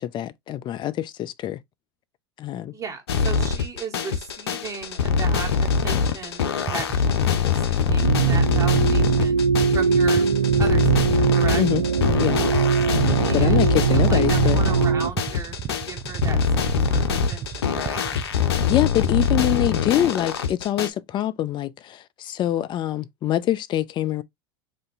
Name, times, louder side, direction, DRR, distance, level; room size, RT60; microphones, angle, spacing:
voice 1, 0.0-1.6 2.4-2.7 11.6-11.8 12.2-12.4 13.3-14.6 18.7-24.2, left 12 dB, 35° left, 0.5 m, -25 dB
voice 2, 2.7-6.4 6.7-9.4 9.7-10.3 10.6-11.6 13.2-18.0, right 5 dB, 25° right, 1.4 m, -36 dB
sound 1, 3.1-20.9, left 6 dB, 80° left, 0.7 m, -23 dB
sound 2, 6.7-19.3, right 8 dB, 40° right, 0.7 m, -34 dB
sound 3, 8.0-15.1, right 7 dB, 90° right, 0.4 m, -21 dB
3.7 x 2.7 x 3.8 m
hypercardioid pair, 95°, 13 cm